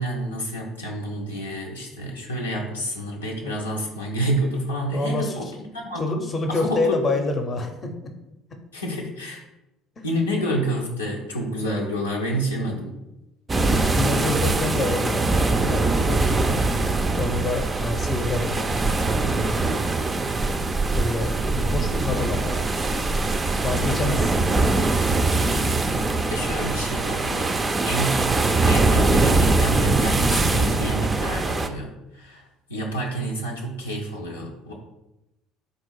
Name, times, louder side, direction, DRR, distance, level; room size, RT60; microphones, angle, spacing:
voice 1, 0.0-6.2 6.5-7.3 8.7-9.4 10.0-13.0 25.9-28.3 28.6-32.4 32.7-34.7, right 1 dB, 90° left, -2 dB, 0.6 m, -29 dB
voice 2, 4.9-5.5 6.0-8.1 8.5-8.6 10.0-10.1 13.9-16.6 17.2-19.9 20.9-22.8 23.6-24.7, left 2 dB, 35° left, 5 dB, 0.6 m, -28 dB
sound 1, 13.5-31.7, right 3 dB, 25° right, 0.4 m, -22 dB
3.7 x 2.4 x 4.6 m, 0.93 s
hypercardioid pair, 60°, 0 cm